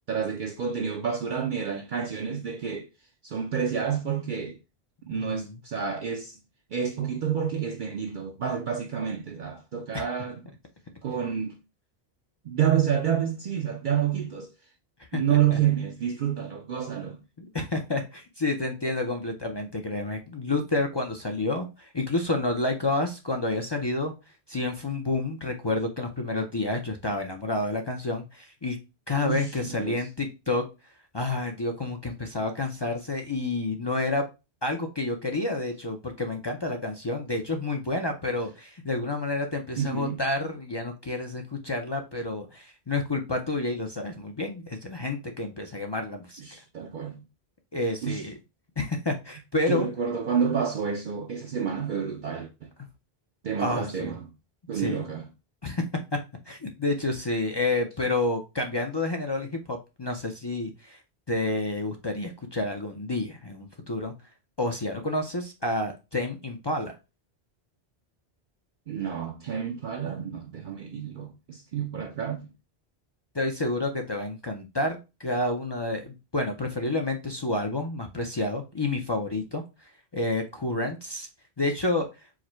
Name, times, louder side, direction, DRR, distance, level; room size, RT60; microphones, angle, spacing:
voice 1, 0.1-2.9 3.2-4.6 5.0-6.4 6.7-10.4 11.0-11.6 12.4-14.5 15.1-17.2 29.3-30.0 39.8-40.2 46.4-47.2 48.0-48.2 49.7-52.7 53.4-54.3 54.7-55.3 68.9-72.5, right 8 dB, 60° right, 0.7 m, -29 dB
voice 2, 5.1-5.5 9.9-10.0 15.1-15.6 17.4-24.1 24.5-28.8 29.1-30.7 31.1-34.2 34.6-46.4 47.7-48.4 48.8-49.9 53.6-54.1 54.7-55.1 55.6-55.8 56.5-61.0 61.3-64.1 64.6-66.9 73.3-79.6 80.1-81.3 81.6-82.1, left 2 dB, 35° left, 0.4 m, -29 dB
4.8 x 2.1 x 4.3 m
omnidirectional pair, 1.1 m